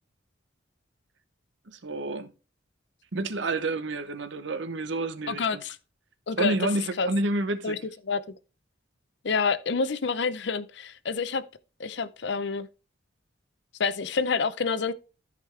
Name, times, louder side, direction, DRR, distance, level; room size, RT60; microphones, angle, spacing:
voice 1, 1.7-2.3 3.1-5.6 6.4-7.8, right 2 dB, 70° right, 0.8 m, -29 dB
voice 2, 5.3-5.8 6.3-6.7 7.0-7.1 7.6-7.8 8.0-8.3 9.2-11.4 11.8-12.7 13.8-14.9, left 4 dB, 65° left, 0.6 m, -28 dB
13.5 x 5.2 x 3.2 m
head